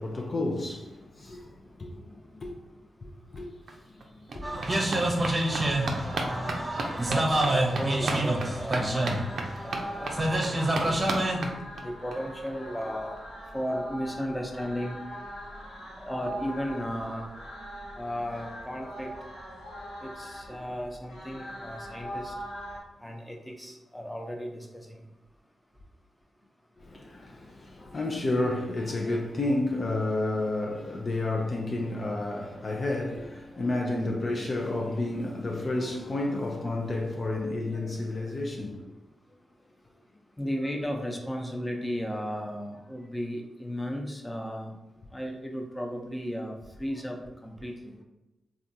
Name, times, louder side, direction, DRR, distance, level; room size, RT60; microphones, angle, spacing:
voice 1, 0.0-2.6 3.0-4.8 26.8-38.9, left 2 dB, 50° left, 0.5 m, -31 dB
sound 1, 3.4-3.5 3.7-12.2 12.5-12.6 12.8-12.9 13.2-13.3, right 3 dB, 70° right, 0.4 m, -36 dB
sound 2, 4.4-11.5, right 1 dB, 35° right, 0.7 m, -28 dB
voice 2, 6.0-6.7 7.0-11.2 11.8-13.2 13.5-15.0 16.0-17.3 17.9-19.1 20.0-22.3 23.0-25.0 40.4-44.7 45.1-46.5 46.8-47.2 47.4-47.9, equal, 10° left, 0.7 m, -35 dB
sound 3, 8.5-22.8, equal, 90° left, 1.1 m, -42 dB
3.4 x 2.4 x 2.7 m
supercardioid pair, 40°, 0 cm